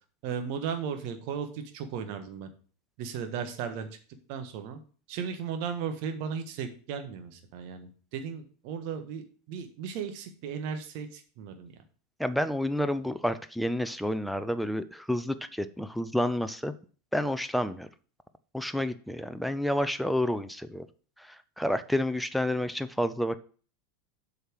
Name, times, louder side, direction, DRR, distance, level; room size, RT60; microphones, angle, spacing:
voice 1, 0.2-2.5 3.0-3.9 4.3-4.8 5.1-11.7, right 7 dB, 55° right, 7 dB, 1.5 m, -36 dB
voice 2, 12.2-16.7 17.1-17.9 18.5-20.9 21.2-23.4, left 1 dB, ahead, 11 dB, 0.6 m, -29 dB
8.0 x 5.8 x 4.8 m, 0.41 s
figure-of-eight pair, 85°, 0 cm